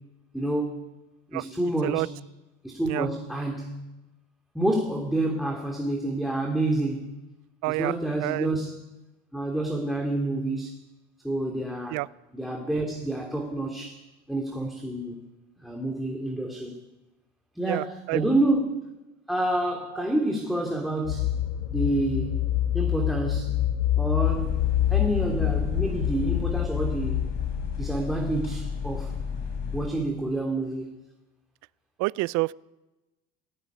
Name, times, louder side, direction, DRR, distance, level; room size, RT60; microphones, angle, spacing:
voice 1, 0.3-0.8 1.3-2.1 2.6-3.8 4.5-7.1 7.7-8.7 9.3-10.7 11.2-12.0 12.3-14.0 14.3-15.2 15.6-16.8 17.5-18.9 19.3-21.4 21.7-22.4 22.7-23.6 24.0-24.6 24.9-27.2 27.8-29.1 29.7-30.9, right 1 dB, ahead, 3.1 m, -28 dB
voice 2, 7.6-8.5 11.9-12.1 17.6-18.3 19.9-20.0 32.0-32.5, right 23 dB, 65° right, 0.6 m, -28 dB
sound 1, 21.0-28.4, left 12 dB, 85° left, 1.4 m, -26 dB
sound 2, 24.2-29.9, left 5 dB, 60° left, 7.7 m, -33 dB
18.5 x 16.0 x 9.3 m
supercardioid pair, 90°, 31 cm